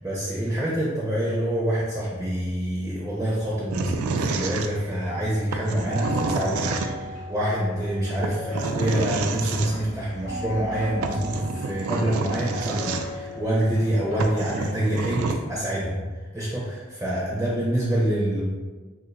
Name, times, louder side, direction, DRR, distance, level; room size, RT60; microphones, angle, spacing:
voice 1, 0.0-6.7 7.1-16.0 16.3-18.4, right 1 dB, 10° right, -5 dB, 0.4 m, -26 dB
sound 1, 3.7-5.1 5.5-7.2 8.2-9.7 10.7-10.8 11.0-13.3 13.8-13.9 14.2-15.4, right 4 dB, 85° right, 0.3 m, -29 dB
sound 2, 5.9-14.7, left 1 dB, 40° left, 0.7 m, -36 dB
2.5 x 2.5 x 3.9 m, 1.4 s
head